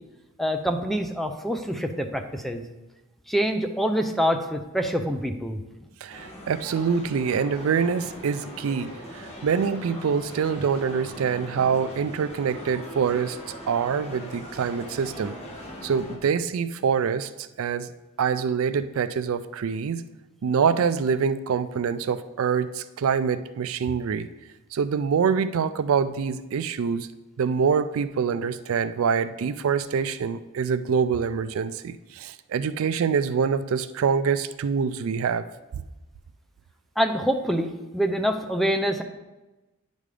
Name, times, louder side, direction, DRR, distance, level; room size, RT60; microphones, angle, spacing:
voice 1, 0.4-2.6 3.3-5.6 37.0-39.0, equal, ahead, 5 dB, 0.5 m, -25 dB
voice 2, 6.0-13.4 13.7-15.3 15.8-17.3 17.6-17.9 18.2-20.0 20.4-24.3 24.7-27.1 27.4-35.4, right 6 dB, 70° right, 12 dB, 0.4 m, -25 dB
sound 1, 6.1-16.2, equal, 30° left, 1.4 m, -40 dB
9.9 x 5.3 x 3.3 m, 1.1 s
head